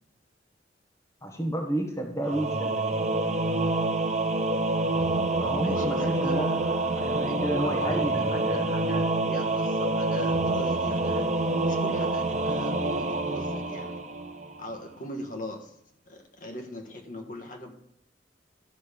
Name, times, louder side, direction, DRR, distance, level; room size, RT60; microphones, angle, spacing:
voice 1, 1.2-2.8 5.4-8.6, right 1 dB, 15° left, 2 dB, 1.3 m, -32 dB
Singing / Musical instrument, 2.2-14.7, right 2 dB, 40° right, 0.7 m, -27 dB
voice 2, 5.6-6.6 7.2-11.3 11.6-14.0 14.6-15.7 16.1-17.7, left 1 dB, 45° left, 3 dB, 1.5 m, -39 dB
12.5 x 5.4 x 6.8 m, 0.73 s
head